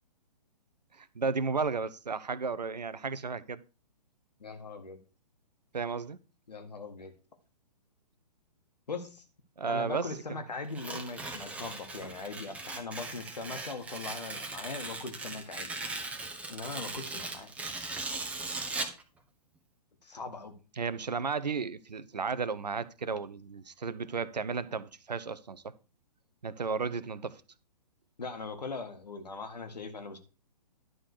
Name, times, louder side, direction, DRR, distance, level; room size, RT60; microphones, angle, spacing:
voice 1, 1.0-3.6 5.7-6.2 9.6-10.4 20.8-25.7 26.4-27.4, right 5 dB, 80° right, 0.7 m, -33 dB
voice 2, 4.4-5.0 6.5-7.1 8.9-9.2 9.6-15.7 16.5-17.5 20.0-20.5 28.2-30.2, left 3 dB, 75° left, 1.7 m, -40 dB
Tearing, 10.7-19.0, right 3 dB, 5° right, 0.9 m, -39 dB
11.0 x 3.8 x 6.5 m
figure-of-eight pair, 125°, 21 cm